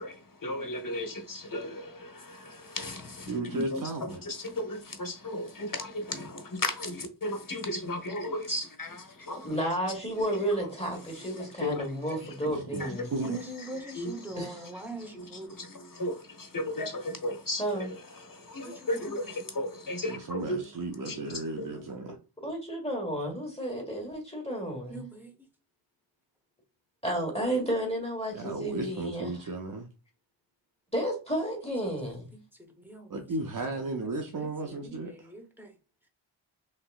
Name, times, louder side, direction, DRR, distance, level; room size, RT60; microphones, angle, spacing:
voice 1, 0.0-9.6 10.5-10.7 10.9-12.5 12.8-13.7 13.9-20.6 21.0-22.0, left 1 dB, 40° left, 1.0 m, -36 dB
voice 2, 3.3-4.2 12.5-12.8 13.1-13.4 20.1-22.2 28.3-29.9 33.1-35.1, right 2 dB, 40° right, 0.6 m, -34 dB
voice 3, 9.4-13.1 14.4-14.5 17.6-17.9 22.4-25.0 27.0-29.5 30.9-32.3, right 1 dB, 10° left, 1.4 m, -32 dB
voice 4, 13.2-15.5 18.6-19.5 24.9-25.5 31.6-33.8 34.4-35.8, right 2 dB, 5° right, 0.8 m, -44 dB
3.2 x 2.8 x 2.4 m
wide cardioid pair, 45°, 49 cm